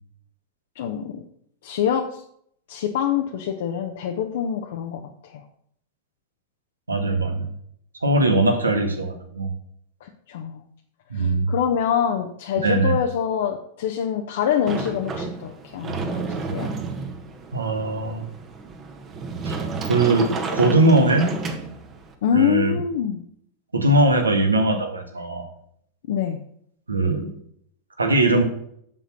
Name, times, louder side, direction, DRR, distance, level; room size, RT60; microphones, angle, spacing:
voice 1, 0.8-1.2 1.6-2.2 2.7-5.4 10.0-10.6 11.1-16.7 22.2-23.2 26.1-26.4, left 8 dB, 55° left, 2 dB, 0.8 m, -25 dB
voice 2, 6.9-7.5 8.0-9.5 11.1-11.5 12.6-13.0 17.5-18.2 19.4-19.6 19.9-21.3 22.3-22.8 23.7-25.5 26.9-27.3 28.0-28.4, right 2 dB, 80° right, 5 dB, 1.6 m, -20 dB
Sliding door, 14.7-22.1, right 4 dB, 25° right, 1.3 m, -31 dB
7.7 x 6.6 x 5.8 m, 0.67 s
figure-of-eight pair, 90°, 0 cm